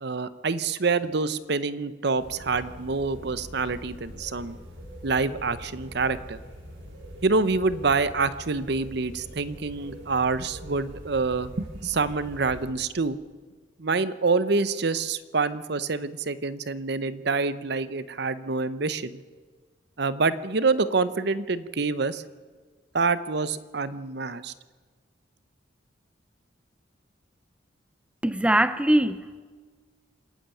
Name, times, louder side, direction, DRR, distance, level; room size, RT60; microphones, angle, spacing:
voice 1, 0.0-4.6 5.0-6.4 7.2-13.2 13.8-19.2 20.0-22.2 22.9-24.5, right 4 dB, 60° right, 0.8 m, -26 dB
sound 1, 2.2-12.7, equal, 80° right, 4.6 m, -43 dB
voice 2, 28.2-29.4, right 1 dB, 5° right, 0.5 m, -22 dB
26.5 x 11.0 x 9.0 m
head